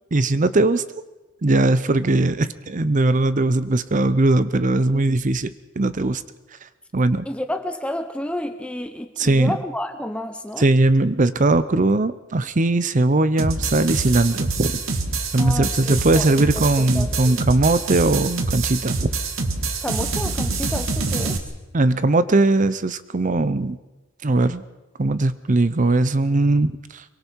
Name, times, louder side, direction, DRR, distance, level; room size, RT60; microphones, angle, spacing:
voice 1, 0.1-0.8 1.4-6.2 6.9-7.3 9.2-9.5 10.6-14.8 15.3-19.1 21.7-23.8 24.2-24.6 25.0-27.0, right 2 dB, 40° right, 14 dB, 0.7 m, -19 dB
voice 2, 7.3-10.7 15.4-17.4 19.8-21.5, left 1 dB, 5° left, 8 dB, 0.7 m, -30 dB
sound 1, 13.4-21.4, right 3 dB, 90° right, 1.9 m, -25 dB
25.0 x 23.5 x 4.6 m, 1.1 s
head